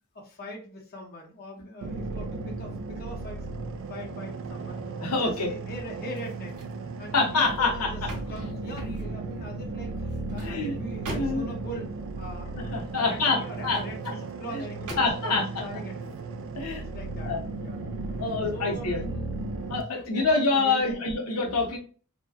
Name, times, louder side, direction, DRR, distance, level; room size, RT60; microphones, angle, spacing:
voice 1, 0.1-3.5 3.9-4.8 5.2-6.6 7.0-8.0 8.3-9.9 10.3-16.2 16.6-17.8 18.5-19.6 19.9-21.0, equal, 45° left, -1 dB, 0.6 m, -41 dB
sound 1, 1.8-19.8, right 3 dB, 60° right, 0.3 m, -36 dB
voice 2, 5.0-5.5 7.1-7.9 10.4-10.7 11.1-11.5 12.5-13.8 14.5-14.7 15.0-15.4 16.6-16.8 17.2-17.5 18.2-19.0 19.7-21.8, left 3 dB, 85° left, 0 dB, 0.7 m, -26 dB
sound 2, 6.1-6.8 7.2-9.2 9.9-11.7 13.5-14.2 14.9-15.5 16.0-16.2, right 1 dB, 80° right, 0.8 m, -43 dB
2.7 x 2.1 x 2.3 m, 0.39 s
head